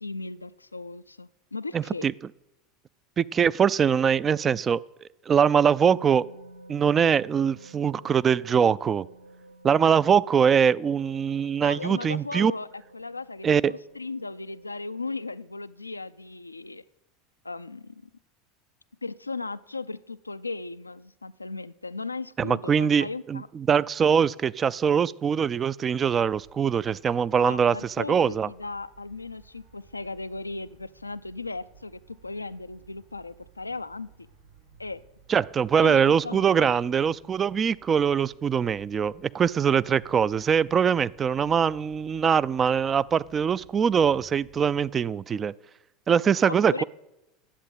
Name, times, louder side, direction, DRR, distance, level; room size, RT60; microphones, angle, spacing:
voice 1, 0.0-2.1 11.6-16.8 17.4-18.1 19.0-23.5 27.4-34.1 34.8-35.0 35.8-37.2 46.5-46.8, left 3 dB, 85° left, 15 dB, 0.4 m, -37 dB
voice 2, 1.7-2.1 3.2-4.8 5.3-6.2 6.7-9.1 9.6-12.5 13.4-13.7 22.4-23.4 23.7-28.5 35.3-45.5 46.1-46.8, right 7 dB, 30° right, 20 dB, 0.3 m, -22 dB
sound 1, 5.9-15.0, right 1 dB, 65° right, 1.9 m, -51 dB
sound 2, 26.0-44.9, right 5 dB, 90° right, 3.1 m, -57 dB
10.0 x 8.2 x 9.0 m, 0.91 s
figure-of-eight pair, 80°, 0 cm